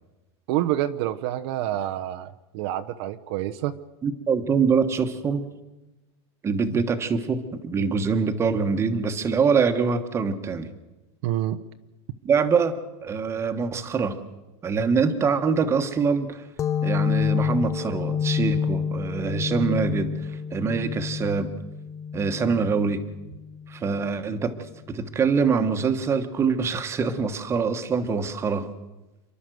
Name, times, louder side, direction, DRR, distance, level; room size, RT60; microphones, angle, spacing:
voice 1, 0.5-3.7 11.2-11.6, right 13 dB, 60° right, 9 dB, 0.9 m, -27 dB
voice 2, 4.0-5.4 6.4-10.7 12.2-12.7 13.0-14.2 14.6-16.4 16.8-20.1 20.5-21.5 22.1-23.0 23.7-24.6 24.9-28.7, right 5 dB, 15° right, 8 dB, 1.4 m, -24 dB
sound 1, 16.6-23.9, left 7 dB, 20° left, 0.6 m, -28 dB
29.0 x 11.5 x 7.8 m, 1.1 s
supercardioid pair, 155°, 15 cm